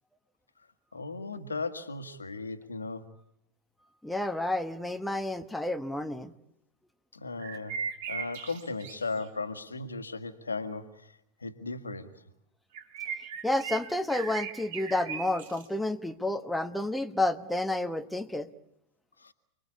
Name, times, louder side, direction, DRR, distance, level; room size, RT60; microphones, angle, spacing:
voice 1, 0.9-3.1 7.1-7.8 8.1-12.1 19.2-19.3, left 3 dB, 75° left, 8 dB, 1.9 m, -36 dB
voice 2, 4.0-6.3 13.4-18.5, left 1 dB, 5° left, 7 dB, 1.2 m, -30 dB
sound 1, 7.4-9.3 12.7-15.7, right 7 dB, 55° right, 3.7 m, -38 dB
29.5 x 22.0 x 8.4 m, 0.80 s
figure-of-eight pair, 90°, 0 cm